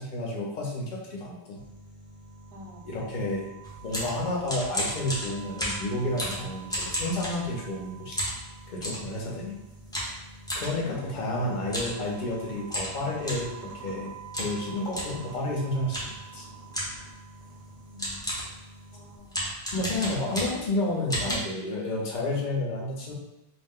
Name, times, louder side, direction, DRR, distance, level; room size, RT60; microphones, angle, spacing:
voice 1, 0.0-1.6 2.8-3.5 3.8-8.2 8.7-9.4 10.5-14.1 14.4-16.5 19.7-23.1, left 1 dB, 50° left, -2 dB, 0.8 m, -31 dB
sound 1, 1.5-19.2, right 4 dB, 40° right, 0.7 m, -46 dB
voice 2, 2.5-2.9 9.4-10.1 10.7-11.3 17.4-17.6 17.9-18.3 18.9-19.5 21.2-21.4, left 1 dB, 70° right, -2 dB, 0.9 m, -46 dB
sound 2, 3.6-7.8 8.2-9.1 9.9-10.7 11.6-12.0 12.3-12.4 12.7-13.5 14.3-14.6 14.9-15.2 15.9-16.2 16.7-17.1 17.7-17.8 18.0-18.6 19.3-20.7 21.1-21.3, equal, 5° left, 0.5 m, -32 dB
2.5 x 2.1 x 3.5 m, 0.96 s
omnidirectional pair, 1.1 m